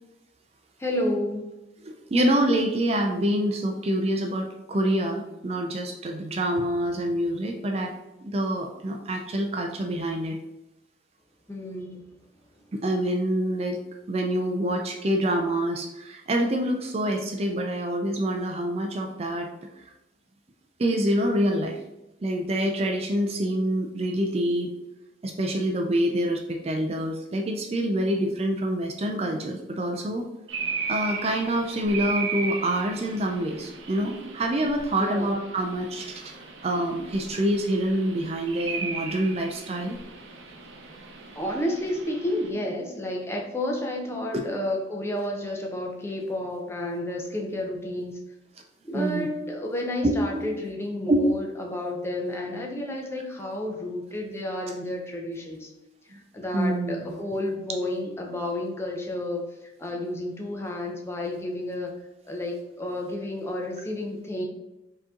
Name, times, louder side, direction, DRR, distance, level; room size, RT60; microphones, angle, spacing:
voice 1, 0.8-1.5 11.5-12.0 35.0-35.3 41.3-48.2 48.8-55.7 56.3-59.5 59.8-61.9 62.3-64.4, left 1 dB, 15° left, 0 dB, 0.6 m, -31 dB
voice 2, 1.8-7.9 8.3-10.4 12.7-13.8 14.1-19.5 20.8-21.8 22.2-24.7 25.2-30.3 30.9-36.3 36.6-40.0 44.3-44.4 48.9-49.3 50.0-50.5 51.1-51.3 56.5-57.0, right 1 dB, 35° right, 3 dB, 0.4 m, -26 dB
sound 1, 30.5-42.5, right 5 dB, 90° right, 0.7 m, -37 dB
4.7 x 2.9 x 3.7 m, 0.95 s
head